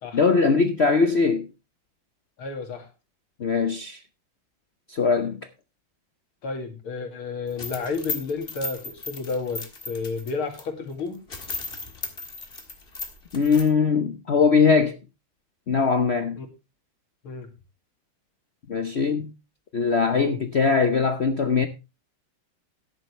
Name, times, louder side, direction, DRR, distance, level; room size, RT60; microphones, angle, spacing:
voice 1, 0.1-1.5 3.4-4.0 4.9-5.4 13.3-15.0 15.7-16.4 18.7-19.3 19.7-21.7, left 5 dB, 60° left, 0.7 m, -21 dB
voice 2, 2.4-2.9 6.4-11.2 16.4-16.5 17.2-17.5 20.2-20.4, left 4 dB, 90° left, 3.2 m, -31 dB
sound 1, 7.5-10.6 11.0-11.1 11.3-13.7, left 3 dB, 30° left, 1.9 m, -35 dB
13.5 x 10.5 x 3.2 m
omnidirectional pair, 2.3 m